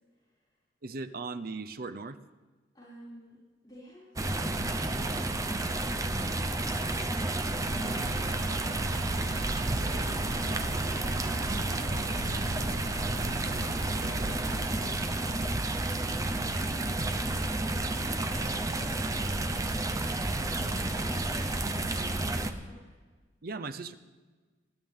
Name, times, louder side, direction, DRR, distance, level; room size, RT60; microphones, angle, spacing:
voice 1, 0.1-0.5 2.7-3.4 3.6-5.5 12.6-16.6 17.3-19.7 20.1-22.8, equal, 20° left, -11 dB, 6.1 m, -51 dB
voice 2, 0.8-2.2 16.6-16.8 23.4-23.9, right 3 dB, 50° right, 12 dB, 0.7 m, -38 dB
sound 1, 4.2-22.5, right 2 dB, 20° right, 0.7 m, -31 dB
sound 2, 7.8-14.6, right 2 dB, 85° right, 0.8 m, -39 dB
20.5 x 14.0 x 3.7 m, 1.3 s
head